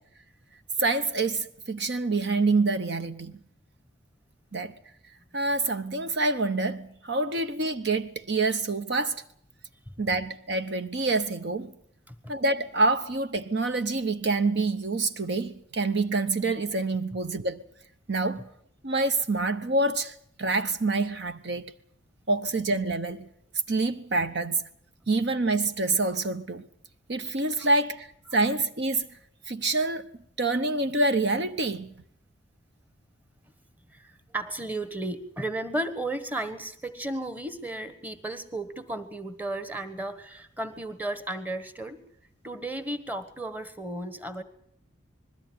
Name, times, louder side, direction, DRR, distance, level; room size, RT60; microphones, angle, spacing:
voice 1, 0.8-3.3 4.5-4.7 5.3-9.2 10.0-11.7 12.3-17.6 18.1-18.5 18.8-21.6 22.3-23.3 23.7-24.6 25.1-26.6 27.1-29.1 29.5-30.1 30.4-31.9, right 3 dB, 55° right, 0.9 m, -26 dB
voice 2, 33.9-42.0 42.4-44.4, right 1 dB, 10° right, 1.4 m, -34 dB
21.0 x 14.5 x 9.5 m
head